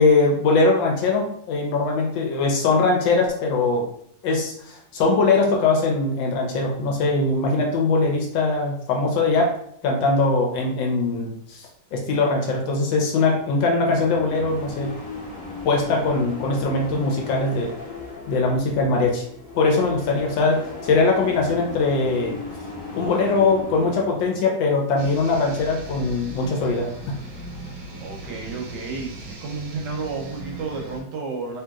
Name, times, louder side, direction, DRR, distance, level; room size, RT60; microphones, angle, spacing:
voice 1, 0.0-3.9 4.2-9.5 9.8-14.9 15.6-17.7 18.3-19.2 19.6-22.3 22.9-27.1, left 3 dB, 75° left, 0 dB, 1.2 m, -21 dB
sound 1, 13.3-24.4, left 2 dB, 50° left, 0.7 m, -37 dB
sound 2, 25.0-31.0, right 1 dB, 90° right, 1.5 m, -38 dB
voice 2, 28.0-31.6, right 4 dB, 70° right, -1 dB, 1.2 m, -31 dB
3.1 x 2.8 x 2.3 m, 0.67 s
omnidirectional pair, 2.2 m